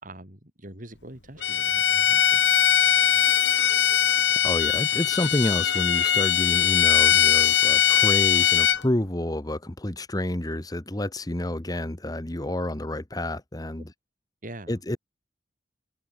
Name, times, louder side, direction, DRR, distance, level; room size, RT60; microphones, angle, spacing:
voice 1, 0.0-2.6 3.1-3.2 14.4-14.8, right 1 dB, 50° right, 7.3 m, -43 dB
Bowed string instrument, 1.4-8.8, left 9 dB, 75° left, 2.3 m, -21 dB
voice 2, 4.4-13.9 14.7-15.0, left 1 dB, 20° left, 1.2 m, -29 dB
head